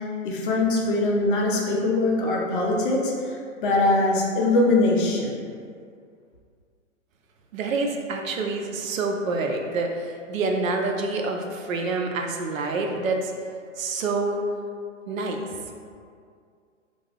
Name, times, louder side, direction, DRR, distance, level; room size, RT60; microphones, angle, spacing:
voice 1, 0.2-5.4, left 2 dB, 45° left, -2 dB, 0.5 m, -22 dB
voice 2, 7.5-13.3 13.8-14.4 15.1-15.4, right 3 dB, 90° right, 2 dB, 0.5 m, -27 dB
2.4 x 2.2 x 3.3 m, 2.2 s
hypercardioid pair, 135°, 39 cm